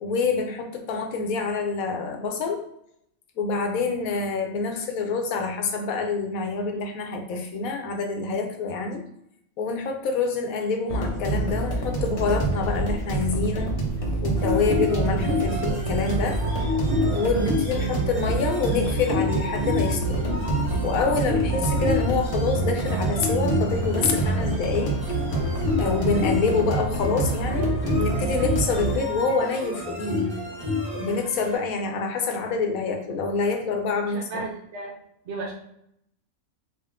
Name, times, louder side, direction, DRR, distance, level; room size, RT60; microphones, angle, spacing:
voice 1, 0.0-2.7 3.4-9.0 9.6-13.7 14.2-16.4 17.1-20.3 20.8-25.0 25.8-30.4 30.9-34.4, left 4 dB, 80° left, 4 dB, 1.1 m, -26 dB
sound 1, 10.9-29.0, right 2 dB, 35° left, 0.6 m, -27 dB
sound 2, 14.4-31.5, left 2 dB, 15° right, 1.3 m, -30 dB
voice 2, 34.1-34.9 35.3-35.5, right 3 dB, 60° right, 1 dB, 0.9 m, -34 dB
3.6 x 2.4 x 3.5 m, 0.75 s
omnidirectional pair, 1.5 m